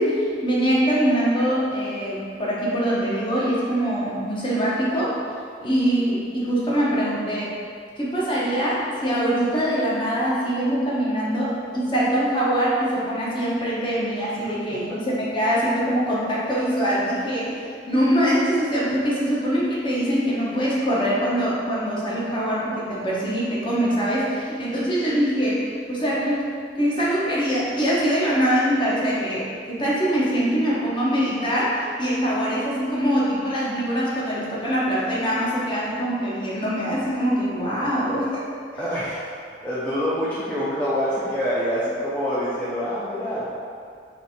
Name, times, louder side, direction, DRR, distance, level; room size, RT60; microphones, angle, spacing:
voice 1, 0.0-5.2 5.6-7.5 8.0-17.6 17.9-26.5 26.7-38.4, equal, 25° left, -7 dB, 0.9 m, -23 dB
voice 2, 38.8-39.4 39.6-43.5, equal, 10° left, -11 dB, 0.5 m, -26 dB
3.2 x 3.2 x 4.1 m, 2.2 s
head